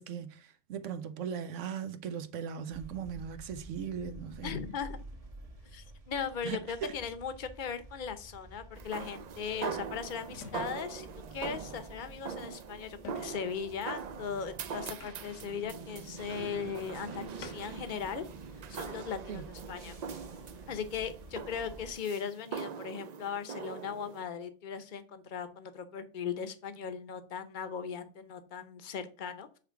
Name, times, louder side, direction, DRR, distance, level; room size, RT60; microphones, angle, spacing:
voice 1, 0.0-4.6 6.4-6.9 19.3-19.4, right 7 dB, 85° right, 1.0 m, -38 dB
sound 1, 2.7-21.9, right 1 dB, 30° right, 1.0 m, -52 dB
voice 2, 4.4-5.0 5.7-18.2 18.7-20.0 20.7-29.6, left 7 dB, 45° left, 0.8 m, -38 dB
sound 2, 8.2-8.3 10.3-11.0 13.0-13.6 15.0-15.5 17.1-17.9, left 5 dB, 80° left, 1.5 m, -50 dB
sound 3, 8.8-24.2, right 6 dB, 70° right, 0.4 m, -42 dB
7.5 x 3.4 x 4.5 m
omnidirectional pair, 1.2 m